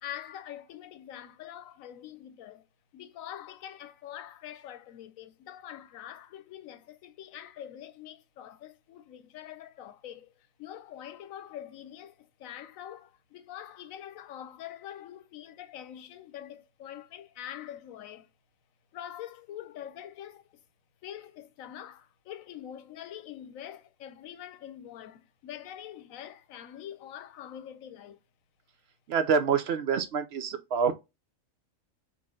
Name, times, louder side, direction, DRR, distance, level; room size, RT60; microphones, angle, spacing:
voice 1, 0.0-2.7 2.9-18.3 18.9-20.6 21.0-28.2, left 11 dB, 90° left, 1.1 m, -44 dB
voice 2, 29.1-30.9, right 6 dB, 60° right, 0.7 m, -26 dB
4.0 x 3.1 x 3.6 m
omnidirectional pair, 1.4 m